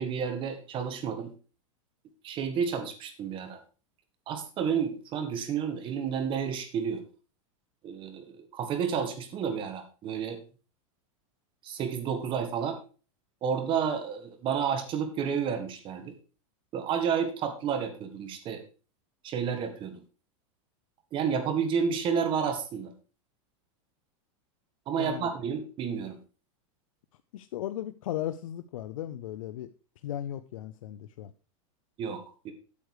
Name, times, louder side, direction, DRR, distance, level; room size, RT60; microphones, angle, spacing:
voice 1, 0.0-1.3 2.2-3.6 4.3-7.0 7.8-10.4 11.6-12.8 13.4-16.1 16.7-18.6 19.2-20.0 21.1-22.9 24.9-26.2 32.0-32.5, right 7 dB, 30° right, 7 dB, 1.7 m, -31 dB
voice 2, 25.0-25.3 27.3-29.7 30.0-31.3, left 12 dB, 85° left, 11 dB, 0.6 m, -36 dB
8.5 x 8.0 x 4.8 m, 0.36 s
supercardioid pair, 150°, 17 cm